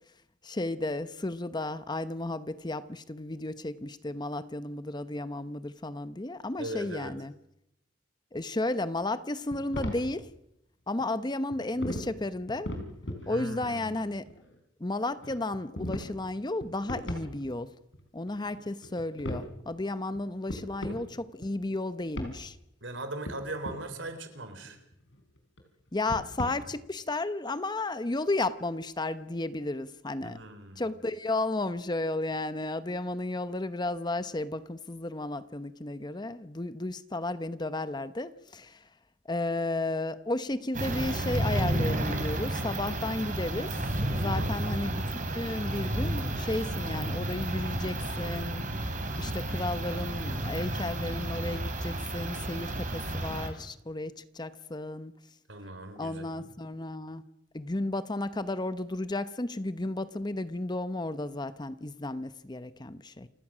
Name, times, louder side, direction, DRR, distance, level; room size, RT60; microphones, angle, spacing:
voice 1, 0.4-7.3 8.3-10.3 10.9-12.7 13.3-14.2 14.8-17.7 18.1-22.6 25.9-30.4 30.8-38.9 39.2-43.8 44.1-48.6 49.2-55.1 56.0-57.2 57.5-63.3, left 2 dB, 25° left, 13 dB, 0.8 m, -33 dB
voice 2, 6.6-7.2 13.2-14.1 22.8-24.8 30.2-31.0 44.3-44.8 55.5-56.5, right 1 dB, 80° right, 8 dB, 3.6 m, -40 dB
sound 1, 9.5-10.1 11.0-11.1 11.5-12.0 12.4-13.3 13.6-14.6 15.2-16.1 16.4-17.7 17.9-18.0 18.3-19.5 20.1-20.2 20.5-21.1 21.3-21.7 22.1-22.3 22.9-23.8 24.5-25.6 25.9-26.5, left 1 dB, 75° left, 4.8 m, -38 dB
sound 2, 40.7-53.5, right 1 dB, 45° right, 3.5 m, -32 dB
28.5 x 16.5 x 6.2 m, 0.80 s
head